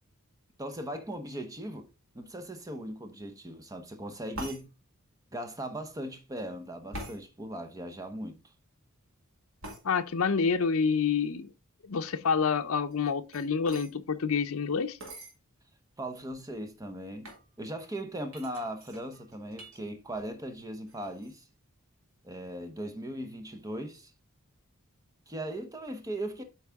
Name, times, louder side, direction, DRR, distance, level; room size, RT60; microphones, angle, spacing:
voice 1, 0.6-1.9 2.1-4.7 5.3-8.4 16.0-17.3 17.6-21.4 22.2-24.1 25.3-26.4, right 1 dB, 15° right, 0.8 m, -38 dB
sound 1, 4.3-4.6 6.9-7.2 9.6-9.8 12.9-13.9 15.0-15.3 16.0-16.1 16.3-16.7 17.2-17.4 18.3-19.8 20.1-20.6 20.9-21.3, right 1 dB, 75° right, 2.5 m, -44 dB
voice 2, 9.8-11.5 11.8-15.0, left 5 dB, 70° left, 0.6 m, -28 dB
8.2 x 4.7 x 3.5 m
head